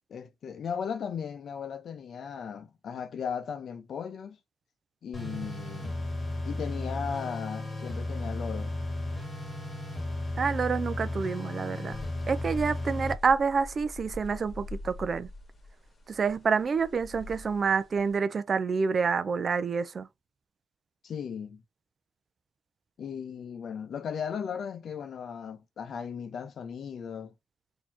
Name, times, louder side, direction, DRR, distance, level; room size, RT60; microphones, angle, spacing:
voice 1, 0.1-4.4 5.0-6.1 6.4-8.7 21.0-21.6 23.0-27.3, left 7 dB, 55° left, 0.7 m, -37 dB
sound 1, 5.1-13.1, left 2 dB, 20° left, 1.9 m, -34 dB
voice 2, 10.4-12.0 12.3-15.3 16.1-20.1, right 5 dB, 40° right, 0.5 m, -28 dB
sound 2, 11.9-18.2, left 2 dB, 35° left, 1.7 m, -45 dB
4.2 x 2.8 x 2.8 m
cardioid pair, 90°, 0 cm